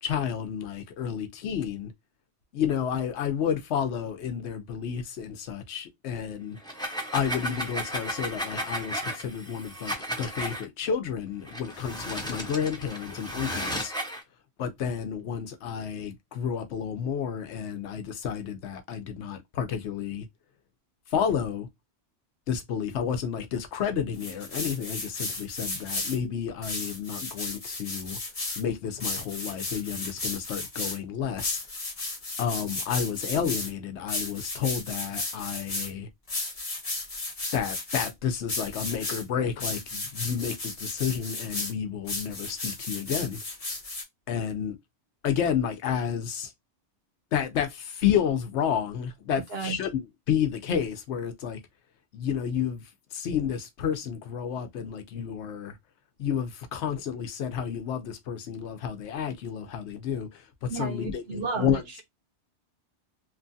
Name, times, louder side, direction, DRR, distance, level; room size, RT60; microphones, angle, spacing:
voice 1, 0.0-1.9 2.5-6.6 7.1-13.9 14.6-20.3 21.1-21.7 22.5-28.2 28.6-31.6 32.4-36.1 37.5-43.4 44.3-44.8 45.2-46.5 47.3-51.6 52.1-55.8 56.2-61.8, left 8 dB, 75° left, 0.9 m, -30 dB
sound 1, 6.6-10.6 11.5-14.2, equal, 5° left, 0.5 m, -34 dB
sound 2, 24.1-26.2 26.6-28.6 29.0-31.0 31.4-33.7 34.1-35.9 36.3-38.1 38.5-39.2 39.6-41.7 42.1-44.0, left 2 dB, 35° left, 0.8 m, -34 dB
voice 2, 60.7-62.0, right 4 dB, 60° right, 0.8 m, -33 dB
3.0 x 2.3 x 2.6 m
omnidirectional pair, 1.2 m